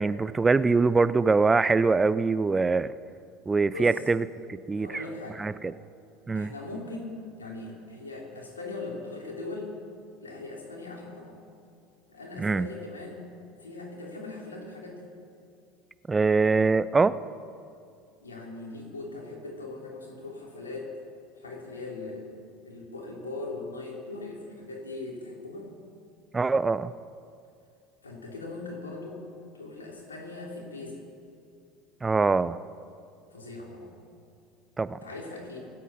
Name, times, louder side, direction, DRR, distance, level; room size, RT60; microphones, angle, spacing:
voice 1, 0.0-2.9 3.5-5.0 5.4-5.5 6.3-6.5 12.4-12.7 16.1-17.2 26.3-26.9 32.0-32.6 34.8-35.0, right 4 dB, 20° right, 16 dB, 0.5 m, -23 dB
voice 2, 4.7-5.4 6.3-9.8 10.2-11.4 12.1-13.3 13.6-15.1 18.2-20.9 21.3-22.3 22.6-25.7 28.0-29.2 29.5-31.0 33.3-33.9 35.0-35.6, left 2 dB, 90° left, -1 dB, 3.2 m, -40 dB
25.0 x 8.5 x 5.7 m, 2.4 s
hypercardioid pair, 70°, 0 cm